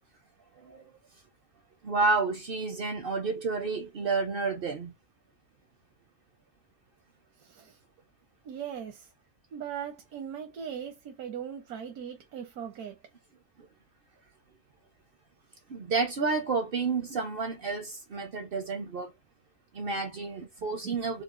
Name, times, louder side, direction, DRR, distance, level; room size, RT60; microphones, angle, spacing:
voice 1, 1.8-4.9 15.7-19.1 19.7-21.2, right 4 dB, 60° right, 0.6 m, -30 dB
voice 2, 8.4-9.0 9.5-12.9, right 8 dB, 85° right, 1.3 m, -39 dB
4.5 x 2.4 x 2.4 m
omnidirectional pair, 1.5 m